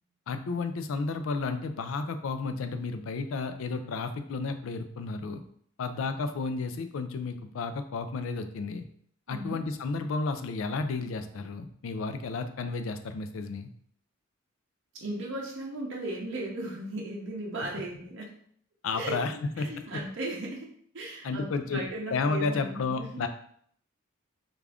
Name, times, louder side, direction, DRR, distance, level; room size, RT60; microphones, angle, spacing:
voice 1, 0.3-5.4 5.8-8.8 9.3-13.7 18.8-19.7 21.2-21.8 22.1-23.3, left 4 dB, 70° left, 9 dB, 0.4 m, -32 dB
voice 2, 9.3-9.6 14.9-18.4 18.9-23.2, right 1 dB, 60° right, -2 dB, 0.6 m, -37 dB
3.5 x 2.4 x 3.4 m, 0.63 s
head